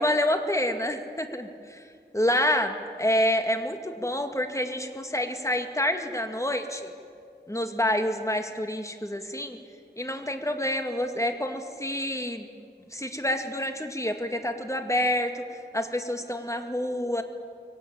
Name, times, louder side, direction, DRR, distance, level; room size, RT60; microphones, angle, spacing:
voice 1, 0.0-1.8 2.1-6.9 7.5-9.6 10.0-12.5 12.9-15.4 15.7-17.2, left 1 dB, 15° left, 5 dB, 2.3 m, -28 dB
23.0 x 18.5 x 8.9 m, 2.2 s
wide cardioid pair, 45°, 17 cm